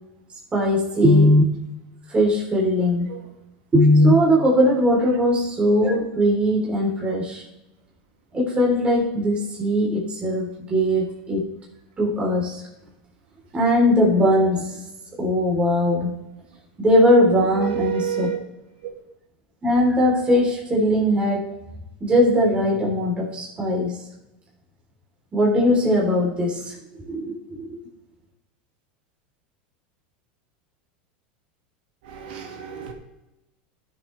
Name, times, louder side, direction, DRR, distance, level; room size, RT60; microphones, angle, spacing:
voice 1, 0.5-1.5 2.1-3.1 3.7-7.4 8.3-11.5 12.0-12.6 13.5-14.7 15.2-16.1 16.8-18.3 19.6-21.5 22.0-24.0 25.3-26.7 27.0-27.8, equal, 20° right, -3 dB, 3.8 m, -19 dB
voice 2, 17.5-18.4 32.0-32.9, right 10 dB, 70° right, 3 dB, 2.0 m, -29 dB
14.5 x 7.3 x 3.4 m, 0.96 s
supercardioid pair, 110°, 5 cm